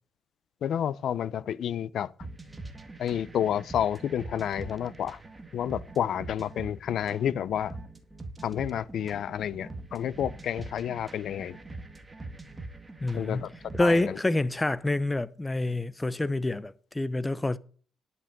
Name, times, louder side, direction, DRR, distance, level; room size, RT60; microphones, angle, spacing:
voice 1, 0.6-2.1 3.0-5.2 5.5-7.8 8.4-11.6 13.1-13.5 13.8-14.2, left 9 dB, 70° left, 0.6 m, -30 dB
sound 1, 2.2-14.2, right 2 dB, 15° right, 1.9 m, -43 dB
voice 2, 13.0-13.4 13.7-17.6, left 2 dB, 15° left, 0.8 m, -27 dB
11.0 x 6.1 x 6.7 m
cardioid pair, 90°, 0 cm